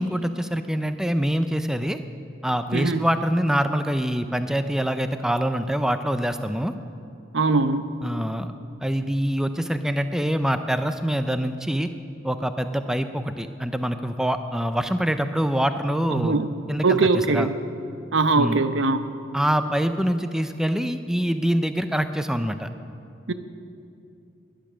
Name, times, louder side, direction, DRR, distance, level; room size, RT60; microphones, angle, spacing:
voice 1, 0.0-2.0 2.4-6.7 8.0-8.5 8.8-11.9 12.2-16.4 16.7-17.5 18.4-18.6 19.3-22.7, equal, 5° right, 9 dB, 0.5 m, -25 dB
voice 2, 7.3-7.9 16.1-16.5 16.8-17.5 18.1-19.0 23.3-23.4, right 3 dB, 85° right, 10 dB, 0.8 m, -21 dB
20.0 x 10.5 x 6.2 m, 2.5 s
head